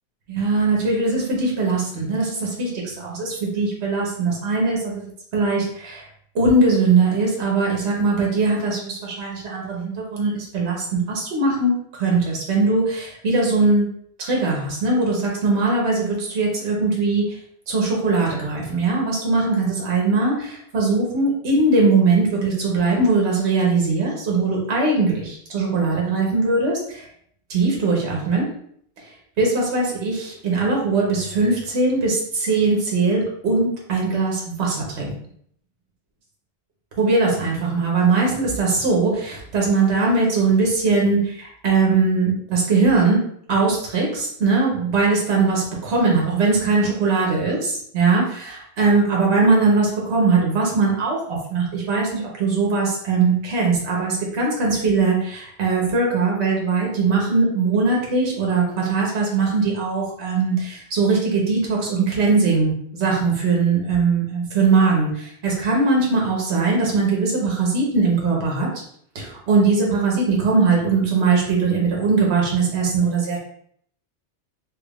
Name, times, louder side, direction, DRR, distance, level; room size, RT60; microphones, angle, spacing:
voice 1, 0.3-6.1 6.3-11.7 12.0-13.9 14.2-17.4 17.7-27.1 27.5-28.5 29.4-35.1 37.0-43.2 43.5-68.7 69.1-73.4, right 3 dB, 70° right, -2 dB, 1.2 m, -20 dB
3.4 x 3.3 x 2.3 m, 0.65 s
omnidirectional pair, 1.2 m